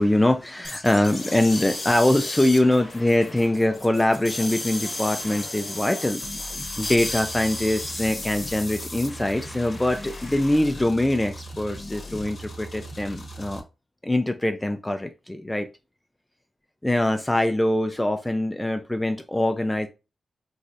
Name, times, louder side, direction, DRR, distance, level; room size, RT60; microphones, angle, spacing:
voice 1, 0.0-6.2 6.8-13.6 14.0-15.7 16.8-19.9, left 1 dB, 15° left, 0.4 m, -23 dB
sound 1, 0.6-10.6, left 2 dB, 35° left, 1.0 m, -35 dB
sound 2, 0.9-6.1, left 3 dB, 80° left, 0.7 m, -44 dB
sound 3, 6.2-13.6, equal, 55° left, 0.8 m, -39 dB
3.1 x 2.5 x 2.5 m
cardioid pair, 55°, 0 cm